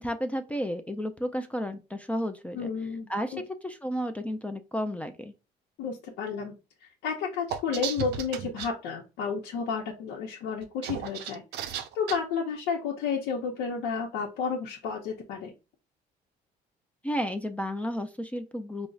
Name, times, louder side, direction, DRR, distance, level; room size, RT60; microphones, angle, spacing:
voice 1, 0.0-3.3 3.6-5.3 17.0-18.9, equal, 10° left, 6 dB, 0.3 m, -32 dB
voice 2, 2.5-3.4 5.8-6.5 6.8-15.5, left 5 dB, 90° left, -1 dB, 0.7 m, -32 dB
sound 1, 7.5-8.7 10.6-12.2, right 9 dB, 80° right, 0.5 m, -34 dB
5.1 x 2.0 x 2.4 m, 0.30 s
cardioid pair, 110°, 17 cm